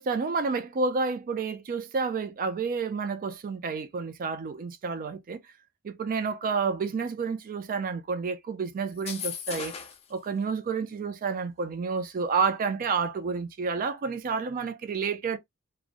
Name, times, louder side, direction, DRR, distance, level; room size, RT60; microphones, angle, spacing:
voice 1, 0.0-5.4 5.8-9.7 10.1-15.4, right 5 dB, 40° right, 0.3 m, -30 dB
sound 1, 8.9-10.1, left 7 dB, 30° left, 0.5 m, -37 dB
2.5 x 2.1 x 2.5 m
head